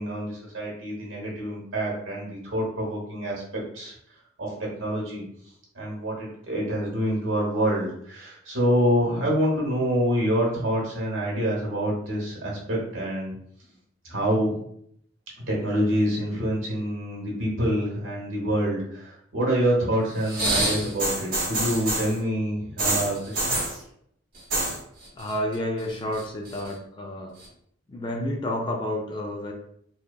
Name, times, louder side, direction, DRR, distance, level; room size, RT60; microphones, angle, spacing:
voice 1, 0.0-3.9 4.4-5.2 5.7-13.3 14.1-14.5 15.5-23.6, equal, 85° right, -3 dB, 0.9 m, -26 dB
sound 1, 20.2-22.2 22.8-23.8 24.3-24.8 25.0-25.5 25.9-26.7 27.4-27.5, right 2 dB, 50° right, 0.9 m, -27 dB
voice 2, 25.1-27.4 27.9-29.5, left 1 dB, 25° left, 1 dB, 0.3 m, -30 dB
2.8 x 2.2 x 2.2 m, 0.69 s
head